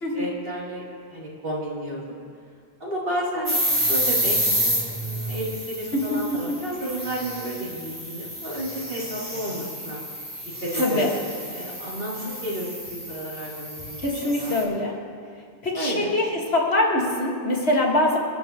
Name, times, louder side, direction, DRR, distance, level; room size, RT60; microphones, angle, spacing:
voice 1, 0.1-0.8 1.1-2.2 2.8-3.6 3.9-10.0 10.6-11.1 11.5-12.7 13.1-14.6 15.7-16.1, equal, 65° right, -6 dB, 3.6 m, -32 dB
sound 1, 3.5-14.6, equal, 10° right, 4.3 m, -29 dB
voice 2, 10.8-11.1 14.0-14.9 15.6-18.2, left 1 dB, 85° left, -2 dB, 2.3 m, -23 dB
28.0 x 11.0 x 3.1 m, 2.1 s
omnidirectional pair, 1.1 m